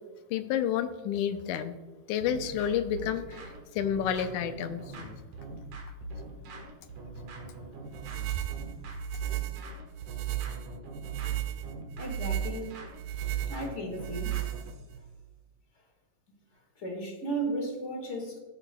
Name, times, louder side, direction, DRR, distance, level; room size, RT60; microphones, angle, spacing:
voice 1, 0.3-1.8 2.1-3.2 3.8-5.1, left 9 dB, 80° left, 10 dB, 1.9 m, -30 dB
sound 1, 2.2-14.9, right 2 dB, 55° right, 2.0 m, -43 dB
sound 2, 7.9-15.0, right 13 dB, 90° right, 2.2 m, -34 dB
voice 2, 12.0-12.8 13.5-14.4 16.7-18.4, right 2 dB, 35° left, 1 dB, 1.2 m, -35 dB
16.5 x 8.6 x 2.2 m, 1.2 s
omnidirectional pair, 3.8 m